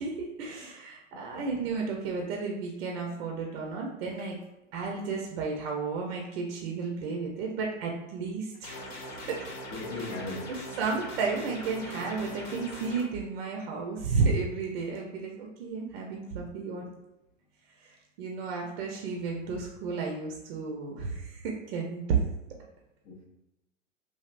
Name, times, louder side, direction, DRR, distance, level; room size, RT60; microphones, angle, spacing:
voice 1, 0.0-4.4 4.7-8.7 9.3-9.4 9.9-10.0 10.8-16.9 17.8-22.2, right 4 dB, 50° right, 0 dB, 0.6 m, -32 dB
voice 2, 1.1-1.4 9.7-10.6 23.1-23.2, left 2 dB, 25° left, -3 dB, 0.4 m, -38 dB
sound 1, 8.6-13.0, equal, 45° left, 0.8 m, -41 dB
3.3 x 2.4 x 2.4 m, 0.93 s
hypercardioid pair, 110°, 39 cm